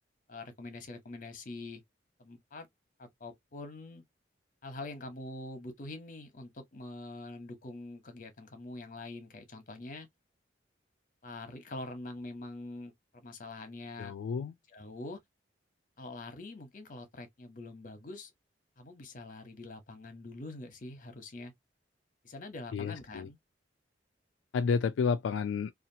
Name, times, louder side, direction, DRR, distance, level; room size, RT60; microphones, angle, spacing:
voice 1, 0.3-1.8 2.2-2.7 3.0-4.0 4.6-10.1 11.2-14.1 14.7-15.2 16.0-18.3 18.8-21.5 22.2-23.4, left 2 dB, 45° left, 0.9 m, -44 dB
voice 2, 14.0-14.5 22.7-23.3 24.5-25.7, left 5 dB, 85° left, 0.3 m, -31 dB
2.8 x 2.4 x 2.7 m
head